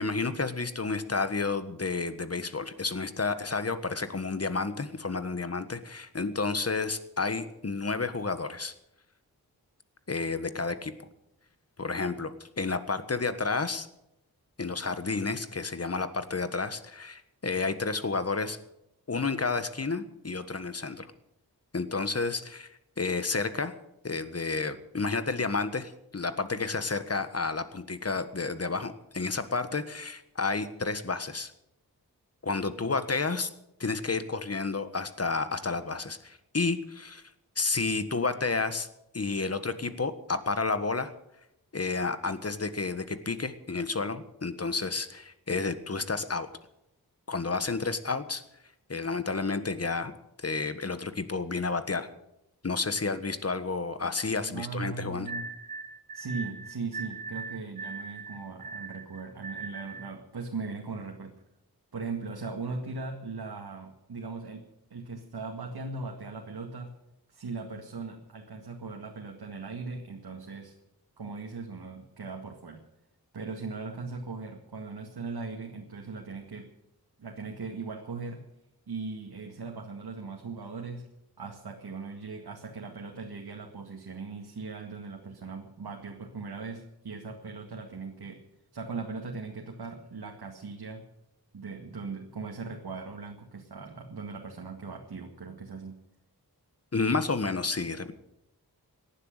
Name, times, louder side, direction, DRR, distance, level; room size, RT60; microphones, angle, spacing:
voice 1, 0.0-8.7 10.1-11.1 11.8-13.9 14.6-18.6 19.1-21.1 21.7-23.7 24.0-31.5 32.4-33.5 33.8-37.2 37.5-38.9 39.1-41.1 41.7-46.5 47.3-48.4 48.9-50.1 50.4-52.1 52.6-55.3 96.9-98.1, left 4 dB, 40° left, 11 dB, 1.5 m, -31 dB
voice 2, 54.5-55.5 56.1-61.4 61.9-66.9 67.3-70.7 71.2-72.8 73.3-76.7 77.2-78.5 78.9-81.0 81.4-88.4 88.7-91.1 91.5-96.0, right 4 dB, 85° right, 1 dB, 2.1 m, -39 dB
sound 1, 55.3-60.1, right 4 dB, 60° right, 1.7 m, -40 dB
18.0 x 11.5 x 6.7 m, 0.84 s
wide cardioid pair, 90°, 37 cm